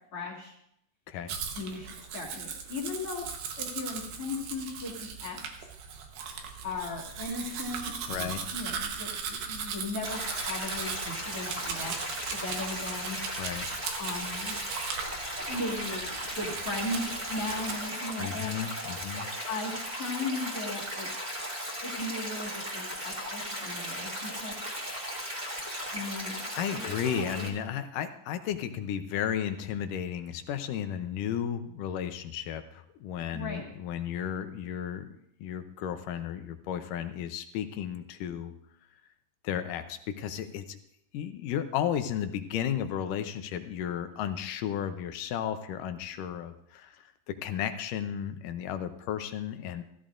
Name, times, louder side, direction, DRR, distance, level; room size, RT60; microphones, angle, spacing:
voice 1, 0.1-0.5 1.5-3.3 3.6-5.4 6.6-10.2 10.5-11.9 12.3-13.2 14.0-14.6 15.5-16.1 16.4-18.5 19.5-19.7 20.0-21.1 21.8-24.6 25.9-26.3 33.3-33.6, left 2 dB, 45° left, -2 dB, 2.4 m, -37 dB
Domestic sounds home sounds, 1.3-17.8, right 6 dB, 85° right, 3.0 m, -38 dB
voice 2, 8.1-8.4 13.4-13.7 18.2-19.3 26.5-35.1 35.4-38.5 39.4-40.8 41.1-49.8, left 9 dB, 75° left, 8 dB, 2.2 m, -34 dB
Stream, 10.0-27.5, equal, 15° right, 1.9 m, -36 dB
15.5 x 14.0 x 2.5 m, 0.75 s
omnidirectional pair, 4.1 m